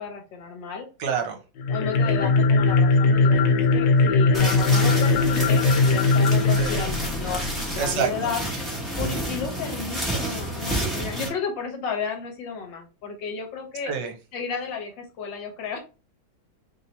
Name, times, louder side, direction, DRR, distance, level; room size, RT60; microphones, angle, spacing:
voice 1, 0.0-0.9 1.7-7.5 7.7-8.4 9.0-13.9 14.3-15.8, left 5 dB, 75° left, 4 dB, 1.6 m, -32 dB
voice 2, 1.0-1.4 6.6-6.8 7.8-8.1 13.9-14.1, right 7 dB, 70° right, 5 dB, 1.3 m, -26 dB
sound 1, 1.6-7.8, left 3 dB, 90° left, 1.4 m, -20 dB
sound 2, 4.3-11.3, right 1 dB, ahead, 0.9 m, -30 dB
3.4 x 2.7 x 4.1 m, 0.33 s
omnidirectional pair, 2.1 m